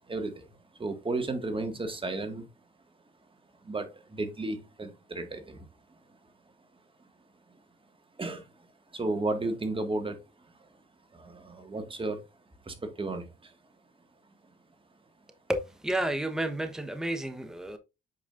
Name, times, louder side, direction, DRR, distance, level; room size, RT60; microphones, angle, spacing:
voice 1, 0.1-0.5 0.8-2.5 3.6-5.7 8.2-8.5 8.9-10.2 11.1-12.2 12.7-13.5, right 2 dB, 25° right, 1.9 m, -33 dB
voice 2, 15.5-17.8, right 1 dB, 5° right, 1.0 m, -31 dB
8.5 x 5.1 x 2.6 m
cardioid pair, 90°, 20 cm